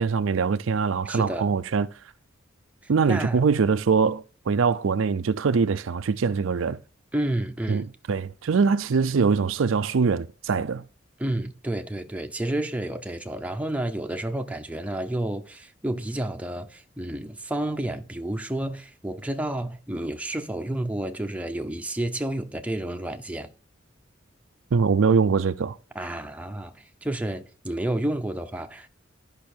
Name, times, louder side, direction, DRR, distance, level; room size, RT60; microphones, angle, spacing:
voice 1, 0.0-1.9 2.9-6.8 7.7-10.8 24.7-25.8, right 5 dB, 75° right, 0.5 m, -23 dB
voice 2, 1.0-1.6 2.8-3.4 7.1-7.9 11.2-23.5 25.9-28.9, right 1 dB, 5° right, 0.7 m, -30 dB
12.0 x 5.6 x 4.4 m
head